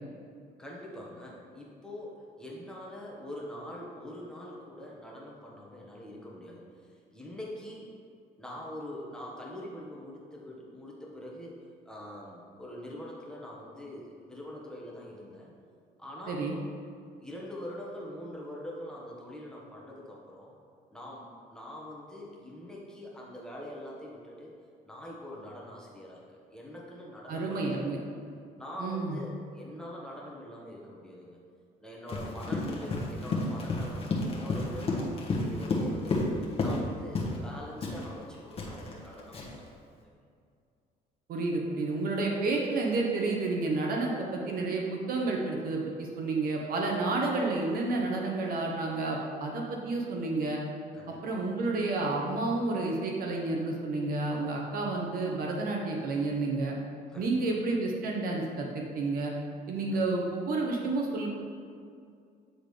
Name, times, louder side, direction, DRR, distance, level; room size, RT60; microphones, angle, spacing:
voice 1, 0.6-7.9 8.4-11.6 11.8-15.5 16.0-16.4 17.2-20.6 20.9-24.5 24.8-26.2 26.5-27.8 28.6-31.4 31.8-36.2 36.6-39.8 50.9-51.4 57.1-57.5 59.9-60.1, left 1 dB, 5° left, -4 dB, 1.2 m, -44 dB
voice 2, 27.3-28.0 28.8-29.2 41.3-50.6 51.2-56.7 57.2-59.3 59.7-61.3, right 3 dB, 60° right, -1 dB, 0.9 m, -30 dB
Run, 32.1-36.9 37.1-37.4 37.8-39.7, left 2 dB, 35° left, 1.2 m, -31 dB
8.7 x 3.8 x 3.2 m, 2.3 s
cardioid pair, 110°, 17 cm